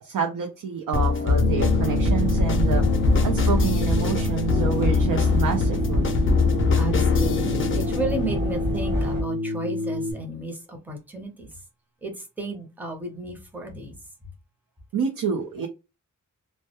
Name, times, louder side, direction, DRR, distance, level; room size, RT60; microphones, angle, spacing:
voice 1, 0.0-6.1 14.9-15.7, right 6 dB, 75° right, 0.5 m, -28 dB
sound 1, 0.9-8.0, left 5 dB, 40° left, 0.4 m, -23 dB
sound 2, 1.4-10.1, left 2 dB, 55° right, 0.9 m, -28 dB
sound 3, 1.6-9.2, equal, 35° right, 1.2 m, -27 dB
voice 2, 6.8-11.6 12.0-13.9, right 2 dB, 5° right, 0.6 m, -33 dB
2.2 x 2.1 x 2.7 m
wide cardioid pair, 160°, 33 cm